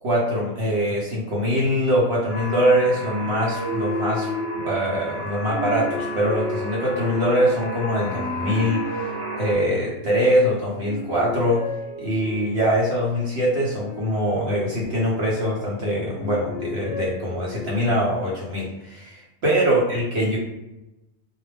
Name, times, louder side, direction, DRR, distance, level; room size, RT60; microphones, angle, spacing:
voice 1, 0.0-4.3 4.5-9.1 9.4-11.6 12.0-20.4, equal, 70° right, -4 dB, 0.9 m, -23 dB
sound 1, 2.3-9.6, equal, 15° right, 0.7 m, -31 dB
sound 2, 2.8-4.9 5.4-7.4 8.1-10.3 10.7-12.8 13.5-15.6 16.1-18.1, left 1 dB, 65° left, 0.7 m, -36 dB
2.2 x 2.1 x 3.2 m, 0.94 s
omnidirectional pair, 1.2 m